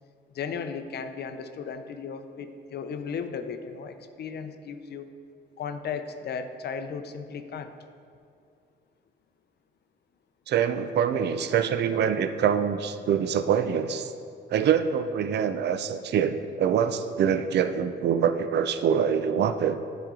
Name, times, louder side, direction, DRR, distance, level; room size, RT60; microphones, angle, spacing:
voice 1, 0.3-5.1 5.6-7.7, left 6 dB, 55° left, 9 dB, 0.5 m, -35 dB
voice 2, 10.5-14.1 14.5-19.8, right 8 dB, 60° right, 10 dB, 0.5 m, -25 dB
10.0 x 5.1 x 3.7 m, 2.4 s
cardioid pair, 90°, 20 cm